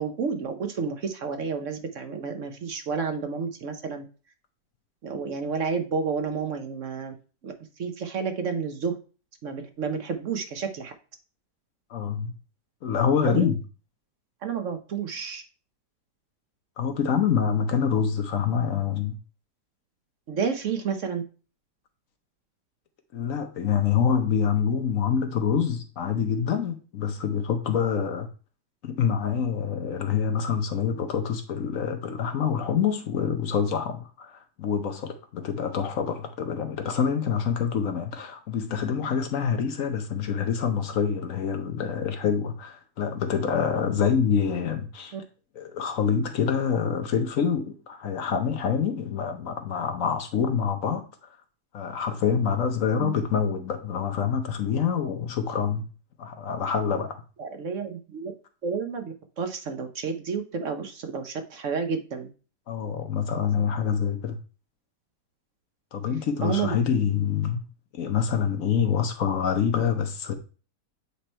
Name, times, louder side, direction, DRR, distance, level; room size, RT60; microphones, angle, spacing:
voice 1, 0.0-4.0 5.0-7.1 7.4-9.0 9.4-10.9 13.2-13.5 14.4-15.4 20.3-21.2 45.1-45.2 53.0-53.1 57.4-58.3 58.6-62.3 66.4-66.8, right 5 dB, 55° right, 0.9 m, -30 dB
voice 2, 11.9-12.3 12.8-13.6 16.8-19.2 23.1-28.3 28.8-45.2 45.5-51.1 51.7-55.8 56.2-57.2 62.7-64.4 65.9-67.6 67.9-70.3, left 7 dB, 60° left, 1.0 m, -26 dB
8.3 x 3.2 x 4.3 m
omnidirectional pair, 1.8 m